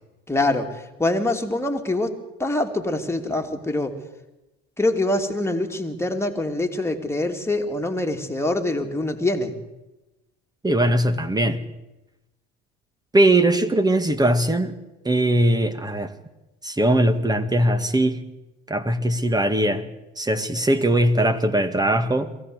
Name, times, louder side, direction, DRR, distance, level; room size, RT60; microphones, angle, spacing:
voice 1, 0.3-2.1 2.4-3.9 4.8-9.5, left 2 dB, 10° left, 3 dB, 2.9 m, -24 dB
voice 2, 10.6-11.6 13.1-14.8 15.0-16.1 16.6-18.2 18.7-19.9 20.2-22.3, right 1 dB, 10° right, 10 dB, 1.9 m, -20 dB
22.5 x 16.0 x 8.1 m, 1.0 s
hypercardioid pair, 80°, 31 cm